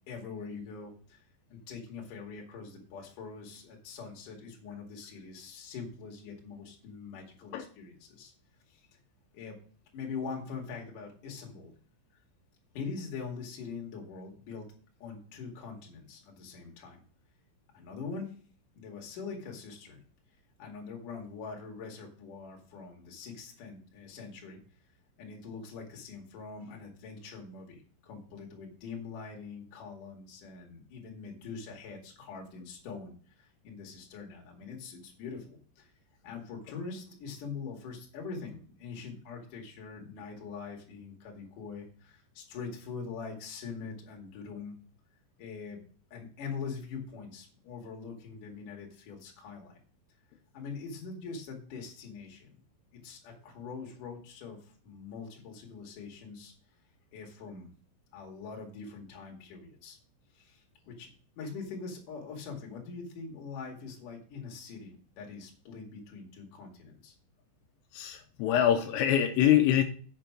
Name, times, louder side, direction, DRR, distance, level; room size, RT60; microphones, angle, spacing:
voice 1, 0.1-1.2 1.5-8.3 8.7-8.9 9.3-9.6 9.9-11.7 12.7-14.7 15.0-17.0 17.7-18.3 18.7-20.0 20.6-24.6 25.2-35.9 36.2-44.7 45.4-45.8 46.1-49.8 50.5-52.5 52.9-56.5 57.1-57.7 58.1-60.0 60.3-61.1 61.4-67.2, left 5 dB, 50° left, 0 dB, 3.0 m, -43 dB
voice 2, 67.9-69.8, left 11 dB, 85° left, 6 dB, 3.3 m, -24 dB
7.7 x 6.9 x 5.9 m, 0.43 s
omnidirectional pair, 5.9 m